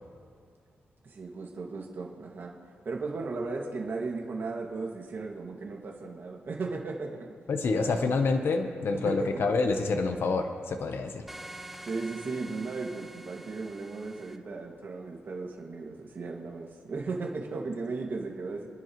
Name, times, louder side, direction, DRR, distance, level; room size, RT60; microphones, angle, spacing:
voice 1, 1.0-2.5 2.8-7.3 7.7-8.2 8.9-9.3 11.9-18.7, right 3 dB, 55° right, 0 dB, 2.1 m, -36 dB
voice 2, 7.5-11.2, left 3 dB, 65° left, 6 dB, 1.0 m, -27 dB
sound 1, 11.3-14.4, right 1 dB, 5° right, 0.8 m, -46 dB
28.0 x 10.5 x 3.2 m, 2.2 s
wide cardioid pair, 115°, 4 cm